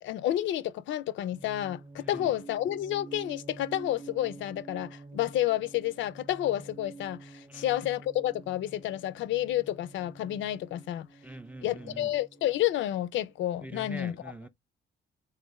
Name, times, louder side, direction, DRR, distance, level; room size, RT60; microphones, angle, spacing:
voice 1, 0.0-11.1 11.6-14.3, left 13 dB, 70° left, 0.4 m, -30 dB
sound 1, 1.3-13.3, right 4 dB, 25° right, 0.7 m, -48 dB
voice 2, 11.2-12.1 13.6-14.5, right 1 dB, 10° right, 0.4 m, -44 dB
3.4 x 2.3 x 3.0 m
cardioid pair, 90°, 20 cm